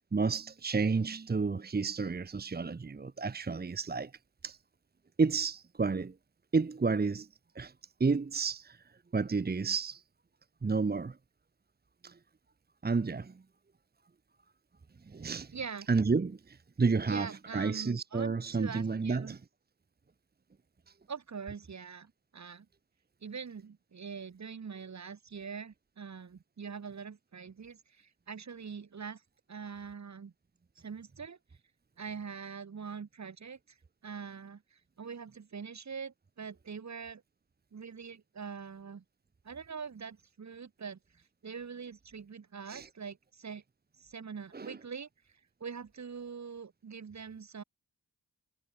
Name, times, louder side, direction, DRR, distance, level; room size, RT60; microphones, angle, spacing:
voice 1, 0.1-4.1 4.4-4.6 5.2-6.1 6.5-7.3 7.5-7.7 8.0-8.8 9.1-10.0 10.6-11.2 12.0-12.2 12.8-13.4 15.1-15.6 15.9-19.4 42.7-42.9 44.5-44.8, right 4 dB, 25° right, 1.0 m, -31 dB
voice 2, 15.5-15.9 17.1-19.4 21.1-22.7 23.2-29.2 29.5-30.3 30.8-31.4 32.0-33.6 34.0-37.2 37.7-39.0 39.4-41.0 41.4-43.6 44.0-45.1 45.6-47.6, right 6 dB, 50° right, 2.2 m, -43 dB
wide cardioid pair, 110°, 36 cm